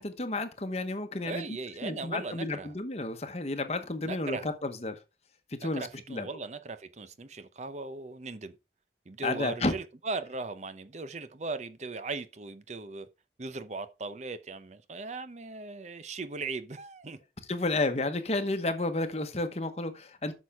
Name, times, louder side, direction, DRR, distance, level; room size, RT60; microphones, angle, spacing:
voice 1, 0.0-1.4 1.8-4.9 5.5-6.3 9.2-9.7 17.5-20.3, left 2 dB, 35° left, 1.0 m, -31 dB
voice 2, 1.2-2.7 4.0-4.5 5.6-8.5 9.1-13.1 13.4-17.2, right 3 dB, 40° right, 0.7 m, -38 dB
8.8 x 6.4 x 3.5 m
head